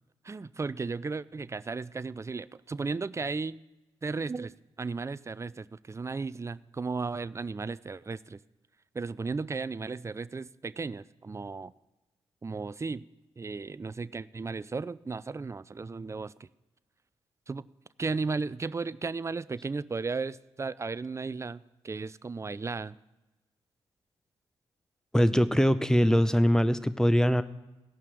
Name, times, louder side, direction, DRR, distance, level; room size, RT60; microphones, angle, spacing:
voice 1, 0.2-3.6 4.0-4.5 4.8-8.4 8.9-11.7 12.4-13.0 13.4-16.5 17.5-17.6 18.0-23.0, right 4 dB, 25° right, 17 dB, 0.4 m, -35 dB
voice 2, 25.1-27.4, equal, 5° left, 13 dB, 0.7 m, -22 dB
15.5 x 5.8 x 6.2 m, 1.1 s
supercardioid pair, 45°, 12 cm